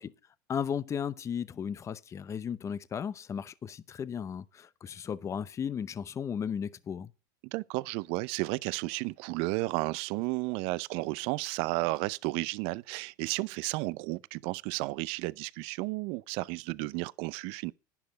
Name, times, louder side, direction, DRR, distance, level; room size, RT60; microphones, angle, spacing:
voice 1, 0.5-7.1, left 7 dB, 30° left, 0.7 m, -35 dB
voice 2, 7.5-17.7, right 22 dB, 60° right, 0.6 m, -33 dB
12.0 x 10.5 x 4.1 m
hypercardioid pair, 95°, 11 cm